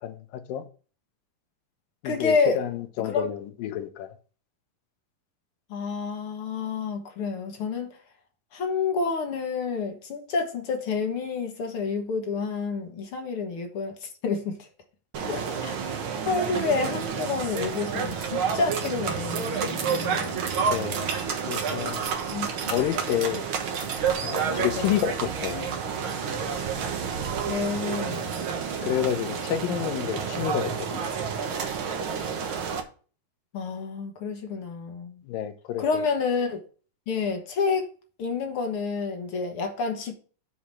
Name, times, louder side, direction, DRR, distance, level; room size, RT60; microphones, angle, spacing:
voice 1, 0.0-0.6 2.0-4.1 20.6-21.1 21.5-22.0 22.7-23.5 24.2-25.7 28.8-31.0 35.3-36.0, left 11 dB, 85° left, 2.6 m, -29 dB
voice 2, 2.0-2.6 3.0-3.3 5.7-8.0 8.5-14.6 15.2-16.0 16.2-20.4 22.3-22.5 24.8-24.9 27.5-28.3 33.5-35.2 35.8-36.6 37.1-37.9 38.2-40.1, left 4 dB, 55° left, 1.8 m, -29 dB
sound 1, 15.1-32.8, right 6 dB, 65° right, 1.3 m, -29 dB
7.2 x 4.9 x 7.1 m
omnidirectional pair, 4.0 m